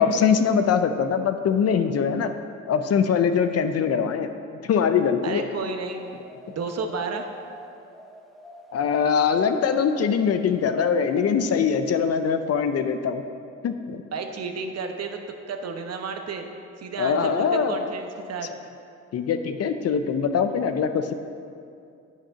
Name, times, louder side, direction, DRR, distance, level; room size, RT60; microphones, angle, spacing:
voice 1, 0.0-2.3 2.7-4.3 4.6-5.5 8.7-13.2 13.6-14.0 17.0-17.9 19.1-21.1, left 6 dB, 55° left, 9 dB, 0.6 m, -22 dB
voice 2, 5.2-6.0 6.5-7.3 14.1-15.2 15.5-16.5 16.8-18.5, right 4 dB, 55° right, 5 dB, 1.0 m, -32 dB
sound 1, 5.9-12.5, equal, ahead, 1.1 m, -46 dB
8.5 x 5.9 x 5.7 m, 2.5 s
cardioid pair, 90°, 30 cm